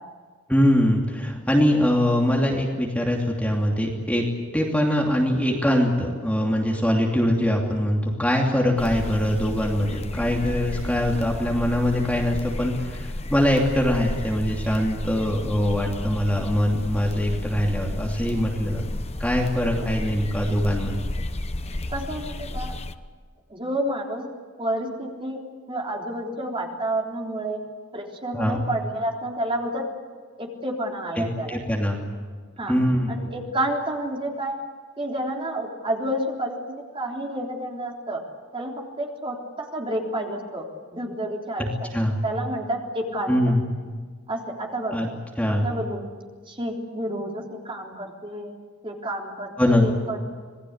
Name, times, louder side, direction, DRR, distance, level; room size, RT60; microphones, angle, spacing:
voice 1, 0.5-4.3 4.5-18.8 19.2-21.0 28.3-28.6 31.2-32.0 32.7-33.2 41.9-42.2 43.3-43.6 44.9-45.1 45.4-45.7 49.6-49.9, equal, 5° left, -1 dB, 2.8 m, -23 dB
sound 1, 8.8-23.0, left 1 dB, 30° left, 0.9 m, -32 dB
voice 2, 21.9-22.7 23.5-24.2 24.6-25.4 25.7-27.6 27.9-29.8 30.4-31.6 32.6-32.8 33.1-34.6 35.0-38.2 38.5-38.7 39.0-40.7 40.9-41.7 41.9-43.5 44.3-45.1 45.5-46.0 46.5-48.5 48.8-50.2, right 1 dB, 25° right, 0 dB, 3.7 m, -30 dB
27.0 x 20.0 x 8.1 m, 1.5 s
head